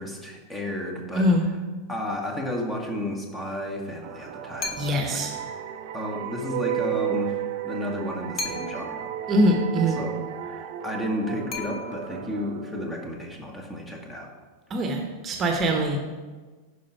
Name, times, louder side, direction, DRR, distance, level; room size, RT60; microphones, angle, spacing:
voice 1, 0.0-1.3 1.9-5.6 5.9-7.4 7.6-9.1 9.9-14.3, left 1 dB, 10° left, 1 dB, 1.6 m, -32 dB
voice 2, 1.1-1.5 4.8-5.3 9.3-10.0 14.7-16.0, equal, 25° right, 3 dB, 1.2 m, -23 dB
sound 1, 4.0-13.4, right 12 dB, 50° right, 0.7 m, -34 dB
sound 2, 4.6-5.2 8.4-9.1 11.5-12.3, left 3 dB, 35° left, 1.2 m, -35 dB
10.0 x 5.0 x 5.8 m, 1.3 s
figure-of-eight pair, 90°, 0 cm